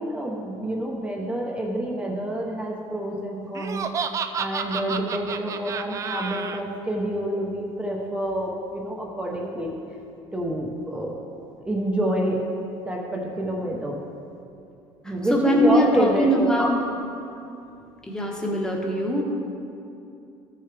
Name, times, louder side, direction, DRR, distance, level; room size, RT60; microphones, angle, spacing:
voice 1, 0.0-3.8 4.4-9.7 10.3-11.2 11.6-12.4 12.9-14.0 15.0-16.5, right 1 dB, 10° right, -2 dB, 0.8 m, -27 dB
Laughter, 3.5-6.6, right 6 dB, 30° right, 0.4 m, -30 dB
voice 2, 15.0-16.8 18.1-19.2, equal, 5° left, -1 dB, 1.2 m, -22 dB
13.5 x 6.8 x 3.3 m, 2.7 s
cardioid pair, 145°, 11 cm